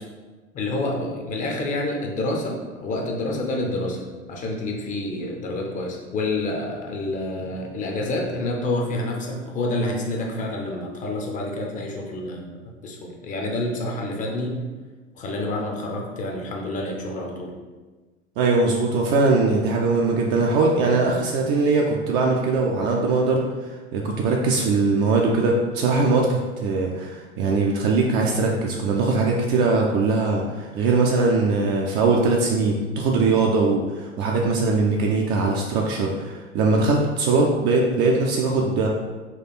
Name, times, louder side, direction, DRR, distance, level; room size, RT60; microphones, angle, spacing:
voice 1, 0.5-4.0 4.3-14.7 15.1-17.5, left 2 dB, 20° left, 0 dB, 0.6 m, -28 dB
voice 2, 18.4-23.4 23.9-38.9, right 3 dB, 30° right, -1 dB, 0.4 m, -21 dB
4.4 x 2.3 x 4.3 m, 1.3 s
figure-of-eight pair, 85°, 37 cm